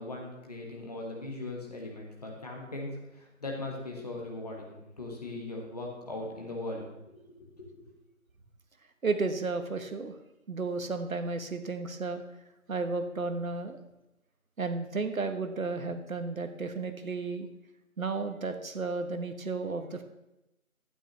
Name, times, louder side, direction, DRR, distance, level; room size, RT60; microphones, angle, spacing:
voice 1, 0.0-6.9 7.6-7.9, left 2 dB, 30° left, -1 dB, 1.5 m, -39 dB
voice 2, 9.0-10.1 10.5-12.2 12.7-13.8 14.6-17.5 18.0-20.0, right 3 dB, 70° right, 8 dB, 1.2 m, -33 dB
12.0 x 9.4 x 3.2 m, 0.91 s
figure-of-eight pair, 170°, 42 cm